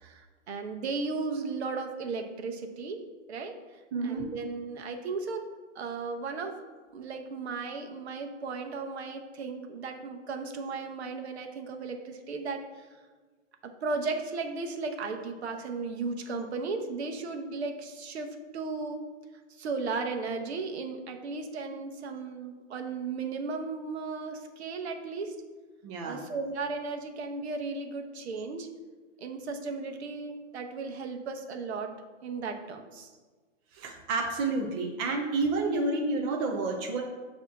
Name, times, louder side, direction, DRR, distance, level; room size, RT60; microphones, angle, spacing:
voice 1, 0.5-3.0 3.3-3.6 4.0-5.4 5.7-6.6 6.9-12.6 13.6-19.0 19.6-25.3 26.0-28.7 29.2-31.9 32.2-33.1, right 4 dB, 55° right, 5 dB, 0.9 m, -35 dB
voice 2, 3.9-4.3 25.8-26.2 33.7-37.0, right 3 dB, 20° right, 0 dB, 0.4 m, -29 dB
6.9 x 2.9 x 5.9 m, 1.4 s
hypercardioid pair, 125°, 38 cm